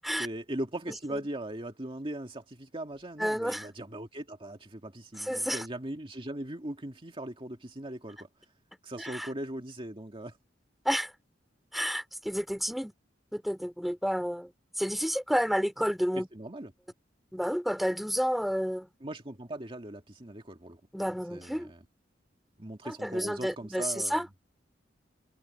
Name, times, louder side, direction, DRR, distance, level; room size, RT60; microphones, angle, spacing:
voice 1, 0.2-8.3 8.8-10.4 16.3-16.7 19.0-20.8 21.3-21.8 22.6-24.2, right 1 dB, 30° right, 2.2 m, -39 dB
voice 2, 3.2-3.7 5.2-5.6 9.0-9.3 10.8-11.1 11.7-12.9 13.3-14.5 14.8-16.3 17.3-18.9 20.9-21.7 22.8-24.3, equal, ahead, 2.5 m, -30 dB
head